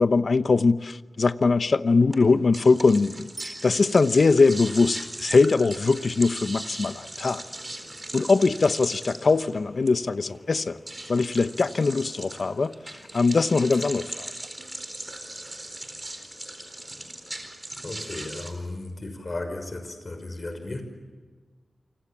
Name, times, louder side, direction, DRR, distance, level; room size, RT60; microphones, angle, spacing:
voice 1, 0.0-7.4 8.1-10.8 11.1-12.7 13.1-14.3, left 4 dB, 60° left, 0.9 m, -21 dB
sound 1, 2.1-18.5, right 1 dB, 25° right, 4.3 m, -39 dB
Bicycle bell, 3.4-4.5 13.6-13.7, right 2 dB, 40° right, 2.8 m, -44 dB
sound 2, 7.3-17.6, left 1 dB, 20° left, 6.6 m, -55 dB
voice 2, 17.8-20.8, left 2 dB, 40° left, 5.7 m, -35 dB
29.0 x 25.0 x 7.3 m
wide cardioid pair, 105°, 0 cm